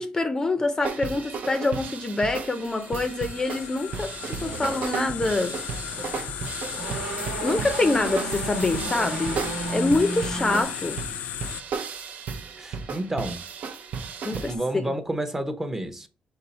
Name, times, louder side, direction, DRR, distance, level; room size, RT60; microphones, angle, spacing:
voice 1, 0.0-5.6 7.4-9.4 9.7-11.0 14.2-14.5, left 2 dB, 25° left, 0.5 m, -25 dB
sound 1, 0.8-14.6, right 5 dB, 65° right, 0.6 m, -35 dB
sound 2, 2.5-11.6, left 10 dB, 80° left, 0.4 m, -36 dB
sound 3, 3.5-3.6 4.1-6.3 6.6-10.6, right 3 dB, 90° right, 1.3 m, -34 dB
voice 2, 12.6-13.4 14.3-16.1, right 1 dB, 15° right, 0.7 m, -30 dB
5.4 x 2.4 x 4.1 m
cardioid pair, 95°, 3 cm